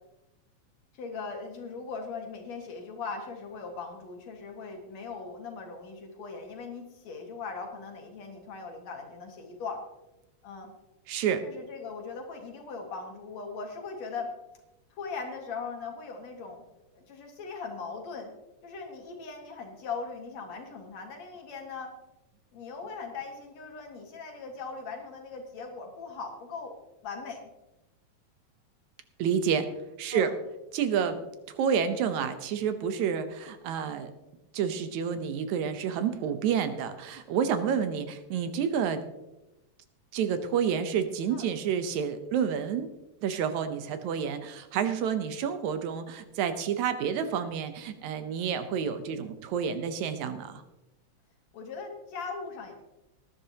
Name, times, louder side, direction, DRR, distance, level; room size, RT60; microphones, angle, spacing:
voice 1, 0.9-9.8 10.4-10.7 11.4-14.3 14.9-16.6 16.9-18.3 18.6-21.9 22.5-26.8 27.0-27.4 30.1-30.3 41.3-41.5 51.5-52.7, left 4 dB, 65° left, 2 dB, 2.9 m, -39 dB
voice 2, 11.1-11.4 29.2-29.7 30.0-30.3 30.7-31.2 31.6-34.1 34.5-39.0 40.1-42.9 43.2-50.6, right 7 dB, 80° right, 10 dB, 2.2 m, -29 dB
19.5 x 10.5 x 2.9 m, 0.97 s
omnidirectional pair, 3.4 m